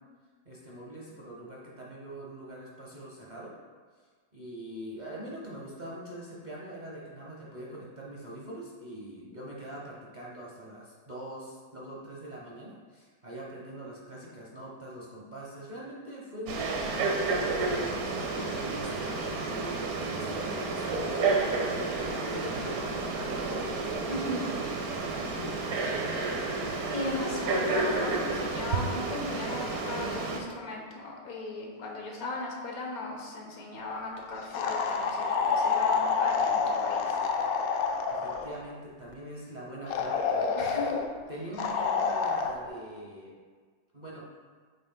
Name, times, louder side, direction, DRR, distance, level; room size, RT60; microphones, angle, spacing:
voice 1, 0.4-3.5 4.3-21.3 21.6-23.7 25.7-26.4 38.1-40.5 41.3-43.3 43.9-44.2, right 1 dB, 40° right, -5 dB, 0.7 m, -43 dB
Frog, 16.5-30.4, right 3 dB, 60° right, 1.0 m, -31 dB
voice 2, 24.1-24.5 26.9-37.2 40.5-41.0, left 2 dB, 55° left, 0 dB, 1.3 m, -37 dB
sound 1, 34.5-38.5 39.9-41.1 41.6-42.5, left 5 dB, 85° left, 0.8 m, -28 dB
7.6 x 6.8 x 2.2 m, 1.5 s
omnidirectional pair, 2.2 m